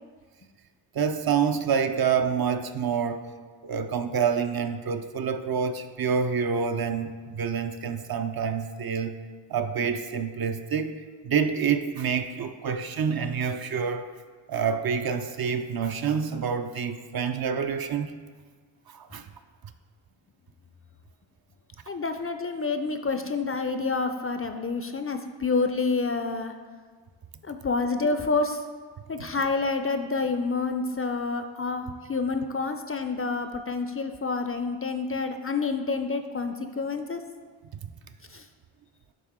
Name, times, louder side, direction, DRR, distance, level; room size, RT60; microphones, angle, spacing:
voice 1, 0.9-3.3 3.6-9.2 9.5-14.1 14.5-18.2 18.9-19.3, right 6 dB, 50° right, 8 dB, 0.5 m, -27 dB
voice 2, 21.9-26.5 27.4-28.6 29.1-37.2 38.3-38.4, left 4 dB, 30° left, 7 dB, 0.4 m, -28 dB
9.1 x 3.5 x 3.6 m, 1.5 s
cardioid pair, 45°, 48 cm